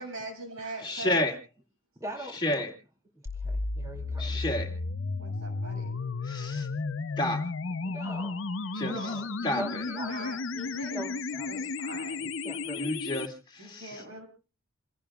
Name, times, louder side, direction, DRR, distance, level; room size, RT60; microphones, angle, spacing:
voice 1, 0.0-1.3 5.2-6.0 8.7-11.1 11.5-12.3 13.6-14.3, right 2 dB, 70° right, 3 dB, 7.4 m, -42 dB
voice 2, 0.8-1.3 2.3-2.7 4.2-4.7 6.2-6.7 7.2-7.4 8.7-9.2 9.4-9.9 12.8-14.2, left 1 dB, 20° left, 2 dB, 2.3 m, -31 dB
voice 3, 2.0-2.4 3.4-4.4 7.8-8.4 8.8-9.3 9.6-10.3 10.9-11.7 12.2-13.0, right 1 dB, 15° right, 0 dB, 2.5 m, -41 dB
sound 1, 3.3-13.3, left 3 dB, 60° left, 0.7 m, -33 dB
28.5 x 17.0 x 2.4 m, 0.35 s
head